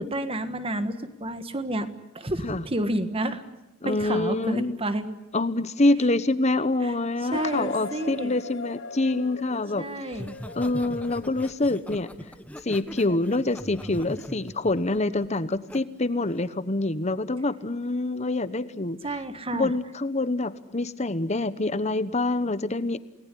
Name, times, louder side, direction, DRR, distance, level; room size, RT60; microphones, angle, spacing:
voice 1, 0.0-1.9 2.1-3.4 3.8-5.2 6.8-6.9 7.3-8.3 9.8-10.4 19.0-19.7, right 1 dB, 25° right, 10 dB, 1.5 m, -30 dB
voice 2, 3.8-4.8 5.3-9.9 10.5-12.1 12.6-19.0 19.5-23.0, left 2 dB, 30° left, 14 dB, 1.0 m, -26 dB
sound 1, 7.3-12.1, left 4 dB, 60° left, 0.9 m, -39 dB
Laughter, 10.1-15.8 16.2-16.5, equal, 5° left, 1.1 m, -41 dB
29.0 x 19.0 x 10.0 m, 0.98 s
head